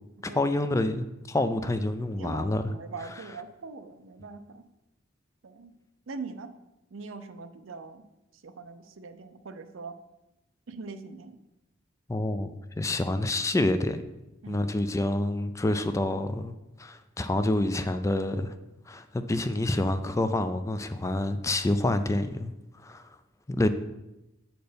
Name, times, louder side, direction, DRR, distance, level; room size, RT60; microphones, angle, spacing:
voice 1, 0.2-2.7 12.1-14.0 14.5-16.5 16.8-18.6 18.9-22.5 22.8-23.1 23.5-23.7, left 1 dB, 15° left, 10 dB, 0.4 m, -27 dB
voice 2, 2.1-4.7 5.4-5.7 6.1-6.5 6.9-8.1 8.4-10.0 10.7-11.4 14.4-14.7, right 4 dB, 85° right, 10 dB, 0.6 m, -42 dB
7.8 x 4.4 x 5.1 m, 0.94 s
head